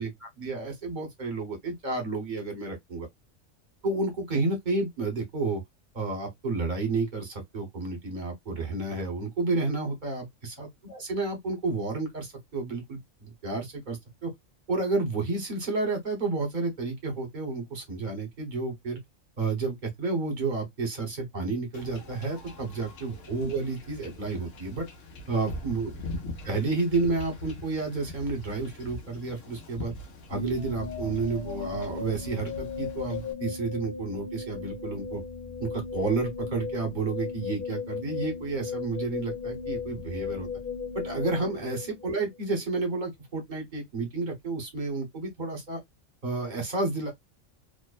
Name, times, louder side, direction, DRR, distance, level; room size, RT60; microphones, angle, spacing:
voice 1, 0.0-3.1 3.8-5.6 5.9-14.3 14.7-19.0 19.4-24.9 25.3-25.9 26.4-29.9 30.3-35.2 35.6-40.5 40.9-45.8 46.2-47.1, right 3 dB, 40° right, 1.1 m, -31 dB
Wind / Ocean / Boat Water vehicle, 21.7-33.3, left 2 dB, 80° left, 1.1 m, -42 dB
sound 1, 30.3-42.4, left 5 dB, 50° left, 1.1 m, -36 dB
2.7 x 2.1 x 2.3 m
omnidirectional pair, 1.3 m